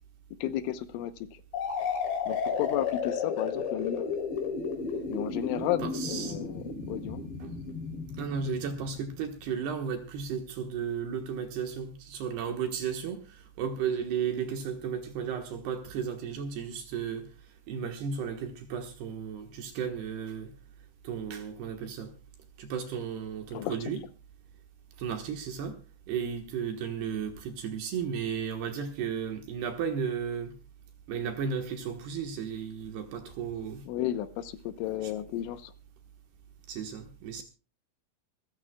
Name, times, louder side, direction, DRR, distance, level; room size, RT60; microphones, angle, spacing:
voice 1, 0.4-1.4 2.3-4.1 5.1-7.2 23.5-23.8 33.9-35.7 37.4-37.5, left 13 dB, 80° left, 3.2 m, -33 dB
sound 1, 1.5-9.2, left 5 dB, 60° left, 5.2 m, -33 dB
voice 2, 5.8-6.4 7.4-7.5 8.2-17.3 17.7-20.5 21.0-22.1 22.6-24.0 25.0-25.8 26.1-30.5 31.1-33.8 35.0-35.1 36.7-37.4, right 7 dB, 65° right, 3.0 m, -34 dB
25.5 x 14.5 x 2.3 m
omnidirectional pair, 5.8 m